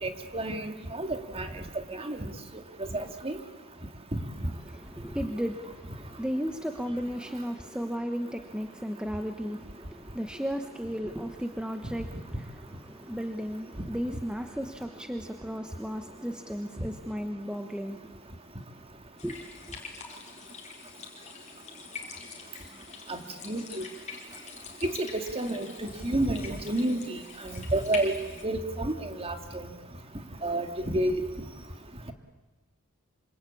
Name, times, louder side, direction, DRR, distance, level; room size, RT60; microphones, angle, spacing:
voice 1, 0.0-1.5 1.9-2.2 2.9-3.4 23.1-23.2 23.4-23.8 24.8-28.1 28.4-29.6 30.4-31.1, right 1 dB, 30° right, 6 dB, 2.3 m, -30 dB
voice 2, 4.7-18.1 19.2-19.4, equal, 5° right, 5 dB, 1.1 m, -35 dB
sound 1, 19.2-28.4, left 5 dB, 35° left, 4.9 m, -44 dB
26.5 x 26.0 x 8.5 m, 1.2 s
head